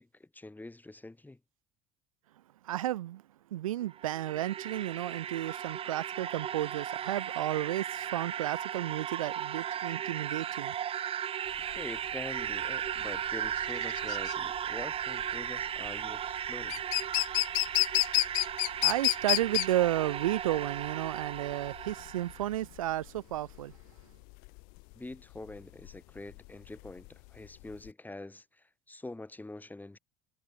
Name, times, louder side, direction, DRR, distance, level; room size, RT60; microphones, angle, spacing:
voice 1, 0.0-1.4 11.7-16.8 25.0-30.0, left 2 dB, 10° left, 3.6 m, -45 dB
voice 2, 2.6-3.2 3.5-10.8 18.7-23.8, right 14 dB, 75° right, 1.2 m, -32 dB
sound 1, 3.8-22.5, right 9 dB, 30° right, 0.7 m, -36 dB
sound 2, 11.5-27.9, left 33 dB, 60° left, 0.9 m, -32 dB
figure-of-eight pair, 65°, 18 cm